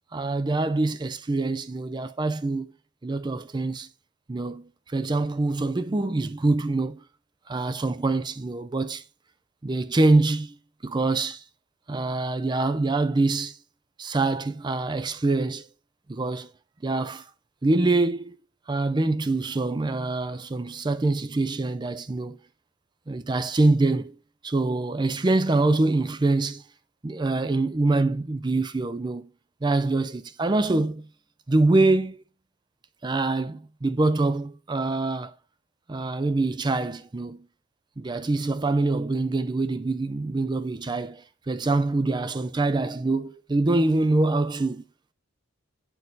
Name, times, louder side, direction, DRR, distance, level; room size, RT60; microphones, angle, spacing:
voice 1, 0.1-2.7 3.0-3.9 4.3-7.0 7.5-9.0 9.6-10.6 10.8-11.4 11.9-13.6 14.0-15.7 16.1-16.5 16.8-17.2 17.6-18.4 18.7-22.4 23.1-24.1 24.4-26.6 27.0-29.3 29.6-31.0 31.5-32.2 33.0-35.3 35.9-37.5 38.0-44.8, right 2 dB, 20° right, 0.4 m, -25 dB
9.4 x 4.6 x 4.0 m
head